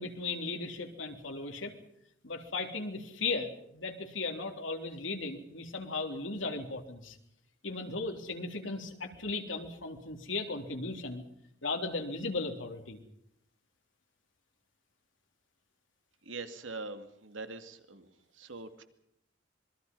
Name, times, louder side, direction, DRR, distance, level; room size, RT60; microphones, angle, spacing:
voice 1, 0.0-1.7 2.2-7.2 7.6-11.2 11.6-13.0, left 3 dB, 85° left, 4 dB, 3.5 m, -36 dB
voice 2, 16.2-18.8, right 3 dB, 90° right, 8 dB, 2.3 m, -43 dB
26.5 x 22.5 x 5.5 m, 0.75 s
head